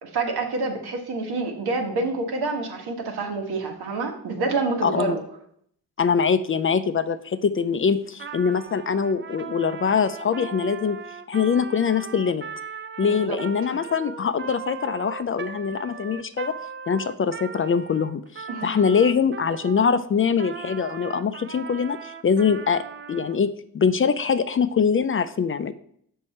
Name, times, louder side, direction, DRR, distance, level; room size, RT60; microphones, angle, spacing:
voice 1, 0.0-5.2 13.0-13.4 18.5-18.7, right 3 dB, 80° right, 3 dB, 1.5 m, -27 dB
voice 2, 4.8-5.2 6.0-11.0 11.3-12.4 13.0-16.5 16.9-22.8 23.1-25.7, left 6 dB, 35° left, 13 dB, 0.4 m, -23 dB
Trumpet, 8.1-19.9 20.4-23.4, right 6 dB, 30° right, 0.5 m, -38 dB
6.5 x 5.5 x 4.2 m, 0.67 s
cardioid pair, 85°, 38 cm